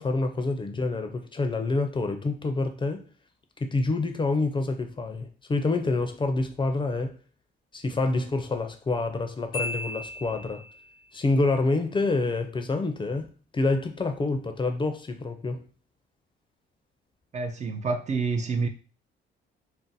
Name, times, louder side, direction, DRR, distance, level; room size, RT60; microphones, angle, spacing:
voice 1, 0.0-3.0 3.7-7.2 7.7-10.6 11.1-15.6, left 3 dB, 25° left, 0.5 m, -27 dB
Marimba xylophone, 9.5-11.0, left 2 dB, 85° left, 0.6 m, -35 dB
voice 2, 17.3-18.7, right 4 dB, 35° right, 0.4 m, -28 dB
2.5 x 2.1 x 3.9 m
cardioid pair, 90°, 20 cm